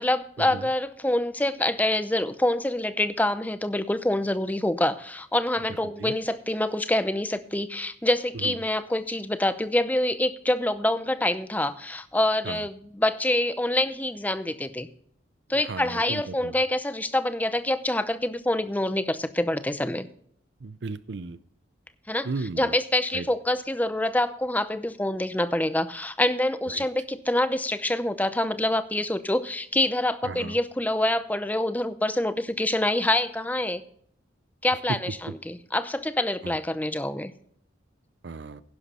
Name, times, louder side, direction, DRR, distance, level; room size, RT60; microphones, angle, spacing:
voice 1, 0.0-14.9 15.5-20.1 22.1-33.8 34.6-37.3, left 1 dB, 10° left, 12 dB, 0.6 m, -26 dB
voice 2, 15.7-16.5 20.6-21.4 22.2-22.7 23.1-23.2 26.7-26.8 30.2-30.5 36.4-36.6 38.2-38.6, right 3 dB, 65° right, 15 dB, 0.5 m, -35 dB
11.5 x 10.5 x 4.2 m, 0.63 s
head